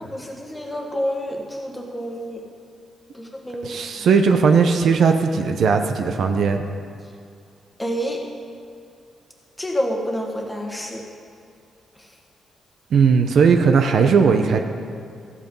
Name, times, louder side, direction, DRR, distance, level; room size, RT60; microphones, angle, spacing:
voice 1, 0.0-2.4 3.1-3.7 4.0-4.1 7.8-8.2 9.6-11.0 12.0-12.1, equal, 10° left, 0 dB, 1.5 m, -28 dB
voice 2, 3.6-6.7 12.9-14.6, right 5 dB, 60° right, 6 dB, 0.8 m, -17 dB
14.0 x 8.5 x 5.4 m, 2.4 s
cardioid pair, 140°, 0 cm